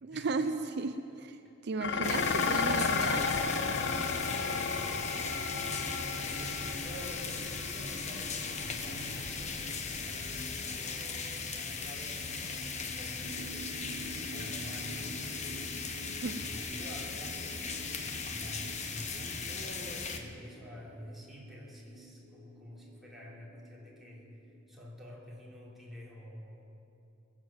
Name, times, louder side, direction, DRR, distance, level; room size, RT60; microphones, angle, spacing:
voice 1, 0.0-1.4 1.6-3.3 16.2-16.4, right 4 dB, 60° right, 9 dB, 0.5 m, -34 dB
Dishes pots and pans, 1.8-10.6, left 4 dB, 60° left, 0.8 m, -34 dB
sound 1, 2.0-20.2, left 5 dB, 35° left, 1.0 m, -38 dB
voice 2, 4.7-13.5 13.9-15.2 16.3-26.7, equal, ahead, -6 dB, 3.3 m, -48 dB
sound 2, 13.2-24.6, right 1 dB, 30° right, 3.8 m, -50 dB
22.0 x 7.5 x 7.5 m, 2.7 s
head